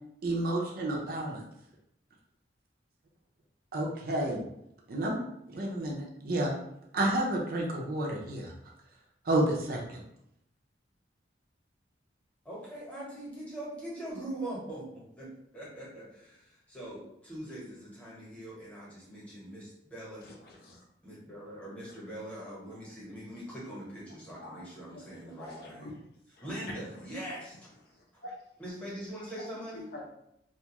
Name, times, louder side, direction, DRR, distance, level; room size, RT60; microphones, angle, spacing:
voice 1, 0.2-1.4 3.7-4.4 4.9-5.2 5.5-6.5 6.9-8.5 9.2-10.0, right 1 dB, 50° right, -1 dB, 0.5 m, -30 dB
voice 2, 12.4-20.3 21.0-25.9 26.4-27.6 28.6-29.9, right 1 dB, 5° left, -7 dB, 0.9 m, -42 dB
voice 3, 20.2-20.8 24.4-24.6 24.9-25.8 28.2-28.3 29.4-30.1, left 2 dB, 55° left, -1 dB, 0.5 m, -46 dB
2.4 x 2.3 x 2.9 m, 0.78 s
head